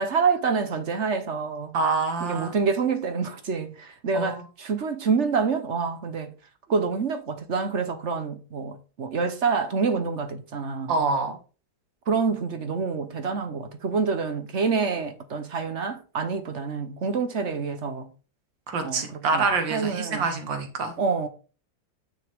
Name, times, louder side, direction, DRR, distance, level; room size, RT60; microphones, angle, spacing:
voice 1, 0.0-1.8 2.2-6.3 6.7-11.0 12.1-18.1 18.8-19.4 19.7-20.2 21.0-21.3, right 5 dB, 45° right, 1.1 m, -27 dB
voice 2, 1.7-2.6 4.1-4.4 10.9-11.4 18.7-20.9, right 4 dB, 85° right, 2.2 m, -26 dB
9.8 x 6.0 x 3.5 m
omnidirectional pair, 2.0 m